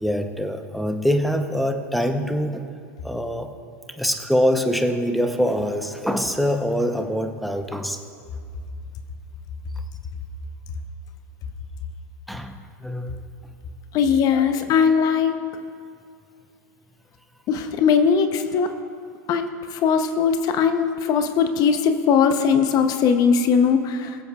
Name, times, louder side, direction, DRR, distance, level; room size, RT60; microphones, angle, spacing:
voice 1, 0.0-2.7 3.0-3.5 4.0-8.0 12.3-13.3 14.3-14.7, equal, ahead, 6 dB, 0.8 m, -24 dB
voice 2, 13.9-15.4 17.5-18.7 19.3-24.2, left 6 dB, 40° left, 8 dB, 0.8 m, -20 dB
22.5 x 7.8 x 2.4 m, 2.3 s
hypercardioid pair, 105°, 9 cm